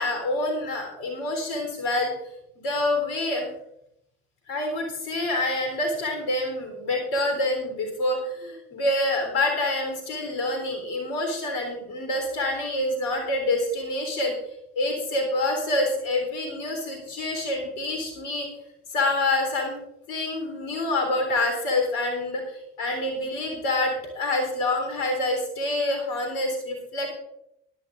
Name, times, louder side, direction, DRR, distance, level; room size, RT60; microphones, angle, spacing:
voice 1, 0.0-2.1 2.6-3.5 4.5-14.3 14.8-18.5 18.9-19.8 20.1-27.1, left 2 dB, 70° left, 3 dB, 3.7 m, -27 dB
17.5 x 11.5 x 2.5 m, 0.77 s
hypercardioid pair, 50°, 33 cm